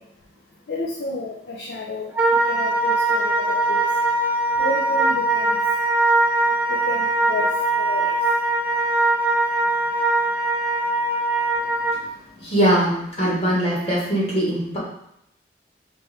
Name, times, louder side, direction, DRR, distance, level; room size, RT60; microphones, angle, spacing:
voice 1, 0.7-2.1 2.5-3.8 4.6-5.6 6.7-7.5 7.8-8.1, left 3 dB, 70° left, -2 dB, 0.5 m, -30 dB
Wind instrument woodwind instrument, 2.1-12.0, right 2 dB, 10° right, 0.4 m, -21 dB
voice 2, 12.4-14.8, right 1 dB, 35° left, -5 dB, 1.2 m, -21 dB
3.4 x 3.1 x 3.2 m, 0.77 s
head